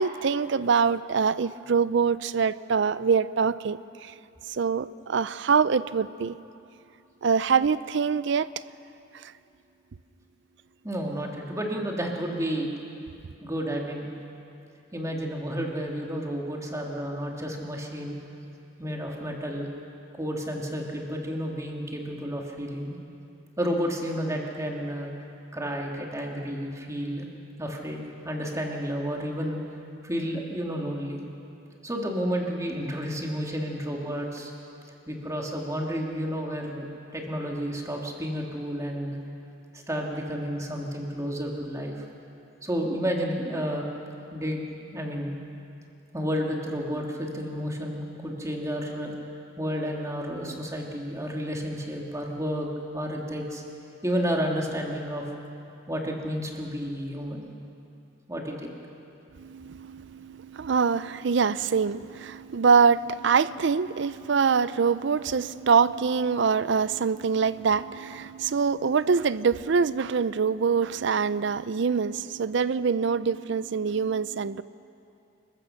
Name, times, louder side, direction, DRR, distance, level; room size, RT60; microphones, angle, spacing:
voice 1, 0.0-3.8 4.6-6.4 7.2-8.5 59.4-74.6, right 5 dB, 60° right, 16 dB, 0.5 m, -24 dB
voice 2, 10.8-12.7 13.4-14.1 14.9-18.2 18.8-19.7 20.2-23.0 23.6-25.1 25.5-27.3 27.6-29.6 30.0-31.2 31.8-34.5 35.1-36.9 37.1-39.2 39.9-42.0 42.6-43.8 44.3-44.6 44.9-45.4 46.1-49.1 49.6-52.7 52.9-53.6 54.0-55.2 55.9-57.5 58.3-58.7, equal, 15° right, 0 dB, 2.2 m, -31 dB
27.5 x 15.0 x 6.5 m, 2.6 s
head